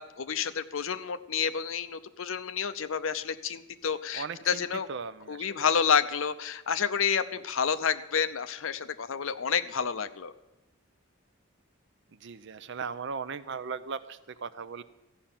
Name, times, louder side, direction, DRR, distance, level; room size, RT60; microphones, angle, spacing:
voice 1, 0.0-4.9 5.3-10.3, left 7 dB, 70° left, 12 dB, 0.7 m, -29 dB
voice 2, 4.1-5.7 12.1-14.8, right 5 dB, 60° right, 14 dB, 0.6 m, -38 dB
14.5 x 5.7 x 8.9 m, 0.98 s
head